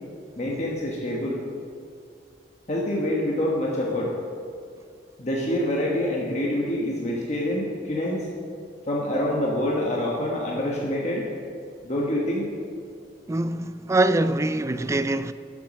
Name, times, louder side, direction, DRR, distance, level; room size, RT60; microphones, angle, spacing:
voice 1, 0.4-1.4 2.7-4.1 5.2-8.3 8.9-11.3 11.8-12.5, left 1 dB, 40° left, 1.4 m, -26 dB
voice 2, 13.3-15.3, right 2 dB, 15° right, 0.4 m, -23 dB
13.0 x 7.5 x 6.3 m
head